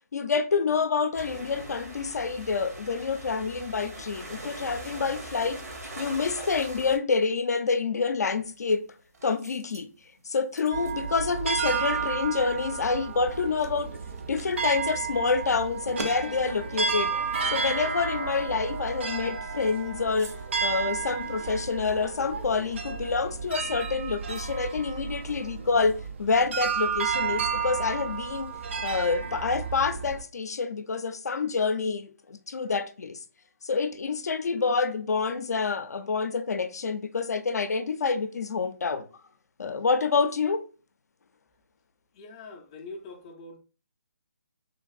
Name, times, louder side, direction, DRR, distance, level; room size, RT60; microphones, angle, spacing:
voice 1, 0.1-5.6 6.0-8.8 9.2-9.9 10.3-14.0 14.3-17.1 17.5-20.3 20.6-28.5 28.8-33.2 33.6-39.1 39.6-40.7, left 4 dB, 85° left, 0.4 m, -27 dB
sound 1, 1.1-7.0, right 1 dB, 90° right, 1.1 m, -41 dB
sound 2, 8.3-22.0, right 2 dB, 75° right, 0.8 m, -49 dB
sound 3, 10.7-30.2, right 5 dB, 45° right, 0.4 m, -32 dB
voice 2, 42.1-43.6, left 3 dB, 20° left, 0.3 m, -43 dB
3.3 x 2.5 x 2.3 m
hypercardioid pair, 160°, 8 cm